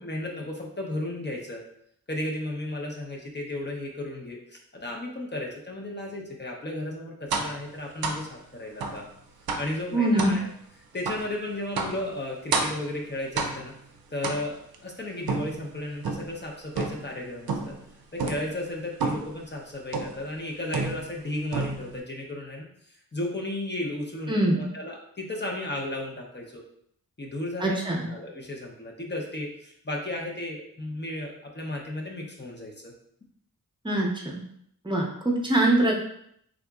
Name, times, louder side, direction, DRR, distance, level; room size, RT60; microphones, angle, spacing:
voice 1, 0.0-1.6 2.1-9.0 9.6-10.5 10.9-13.7 14.1-17.7 18.1-26.6 27.2-32.9, left 1 dB, 30° left, -1 dB, 0.6 m, -34 dB
sound 1, 7.3-7.6 8.0-8.3 8.8-9.0 9.5-9.8 10.2-10.4 11.0-11.3 11.8-12.0 12.5-12.9 13.4-13.8 14.2-14.7 15.3-16.4 16.7-17.1 17.5-17.8 18.2-18.5 19.0-19.4 19.9-20.2 20.7-21.2 21.5-22.0, right 4 dB, 75° right, 0.5 m, -30 dB
voice 2, 9.9-10.3 24.3-24.6 27.6-28.0 33.8-34.1 34.8-36.0, right 1 dB, 15° right, -1 dB, 0.7 m, -23 dB
3.6 x 2.8 x 2.3 m, 0.70 s
wide cardioid pair, 85°, 36 cm